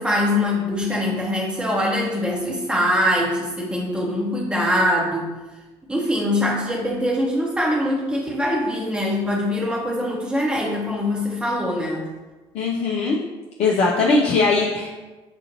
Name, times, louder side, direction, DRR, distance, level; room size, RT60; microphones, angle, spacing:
voice 1, 0.0-5.3 5.9-12.0, left 1 dB, 5° right, -3 dB, 1.0 m, -23 dB
voice 2, 12.5-13.2 13.6-14.9, left 3 dB, 45° left, -3 dB, 0.6 m, -20 dB
6.8 x 2.4 x 2.9 m, 1.2 s
figure-of-eight pair, 55°, 14 cm